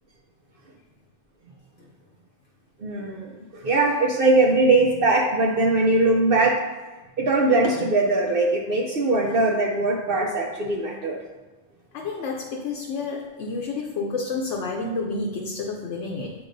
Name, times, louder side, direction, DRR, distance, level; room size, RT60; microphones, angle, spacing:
voice 1, 2.8-6.6 7.2-11.2, right 2 dB, 55° right, 0 dB, 0.7 m, -21 dB
voice 2, 11.9-16.3, left 3 dB, 75° left, 1 dB, 1.0 m, -30 dB
7.8 x 4.6 x 2.6 m, 1.2 s
omnidirectional pair, 1.3 m